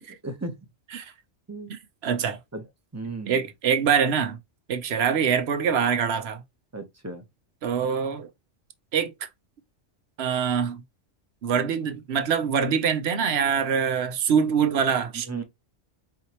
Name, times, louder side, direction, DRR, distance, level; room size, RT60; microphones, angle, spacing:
voice 1, 0.2-0.6 1.5-1.7 2.5-2.6 2.9-3.5 6.7-7.2 15.1-15.4, right 3 dB, 15° right, 0.7 m, -35 dB
voice 2, 2.0-2.4 3.3-4.4 4.7-6.4 7.6-8.3 8.9-9.3 10.2-10.8 11.4-15.4, right 7 dB, 65° right, 0.9 m, -24 dB
4.7 x 2.9 x 2.9 m
omnidirectional pair, 1.2 m